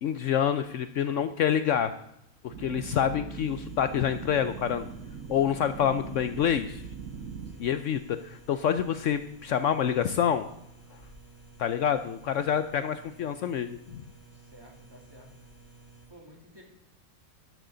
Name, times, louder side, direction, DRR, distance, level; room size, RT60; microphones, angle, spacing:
voice 1, 0.0-1.9 2.4-4.9 5.3-6.8 7.6-10.5 11.6-14.0, left 9 dB, 70° left, 11 dB, 0.9 m, -27 dB
sound 1, 2.5-7.5, right 6 dB, 80° right, 1.3 m, -41 dB
sound 2, 3.3-16.1, right 3 dB, 85° left, 5.8 m, -53 dB
voice 2, 7.4-7.8 14.3-15.5 16.1-16.6, equal, 15° right, -1 dB, 2.8 m, -53 dB
13.0 x 11.0 x 3.9 m, 0.82 s
omnidirectional pair, 1.5 m